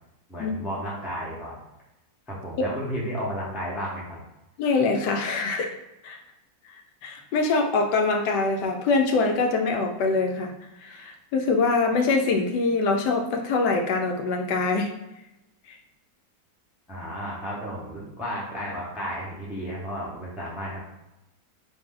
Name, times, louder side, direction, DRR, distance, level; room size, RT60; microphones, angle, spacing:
voice 1, 0.3-1.5 2.3-4.2 16.9-20.8, equal, ahead, -5 dB, 0.6 m, -33 dB
voice 2, 4.6-5.7 6.0-6.2 7.0-10.5 10.8-14.9 15.7-15.8, left 3 dB, 80° left, 3 dB, 1.2 m, -24 dB
4.1 x 2.6 x 3.7 m, 0.94 s
omnidirectional pair, 1.9 m